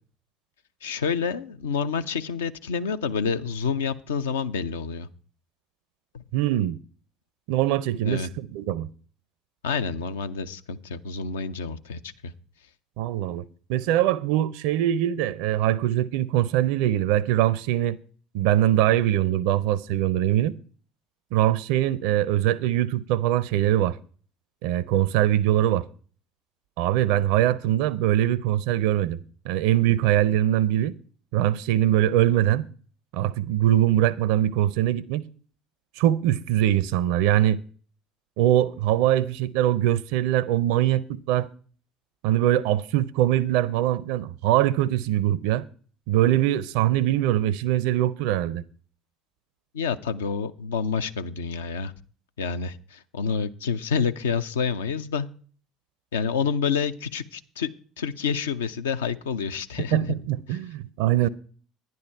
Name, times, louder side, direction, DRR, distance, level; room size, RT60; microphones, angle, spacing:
voice 1, 0.8-5.1 6.1-6.2 8.0-8.3 9.6-12.0 49.7-51.9 52.4-55.3 56.1-57.7 58.0-60.1 60.5-60.6, left 6 dB, 70° left, 0.6 m, -28 dB
voice 2, 6.3-6.8 7.5-8.9 13.0-13.4 13.7-18.0 18.3-20.6 21.3-24.0 24.6-25.9 26.8-29.2 29.4-30.9 31.3-32.7 33.1-35.3 36.0-37.6 38.4-41.5 42.2-45.7 46.1-48.6 59.9-61.3, right 13 dB, 60° right, 0.4 m, -22 dB
11.0 x 10.5 x 4.5 m
figure-of-eight pair, 60°, 0 cm